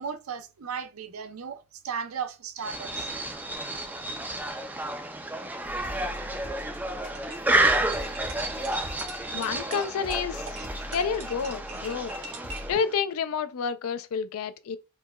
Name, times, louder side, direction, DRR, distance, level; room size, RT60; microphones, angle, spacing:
voice 1, 0.0-3.1, right 6 dB, 70° right, 0.5 m, -36 dB
sound 1, 2.6-13.0, right 2 dB, 10° right, 0.3 m, -30 dB
sound 2, 5.6-12.7, left 1 dB, 35° left, 0.7 m, -42 dB
sound 3, 7.0-12.8, right 2 dB, 85° right, 1.1 m, -43 dB
voice 2, 9.3-10.5 10.9-12.1 12.7-14.8, left 6 dB, 70° left, 0.3 m, -29 dB
4.6 x 2.2 x 2.2 m
head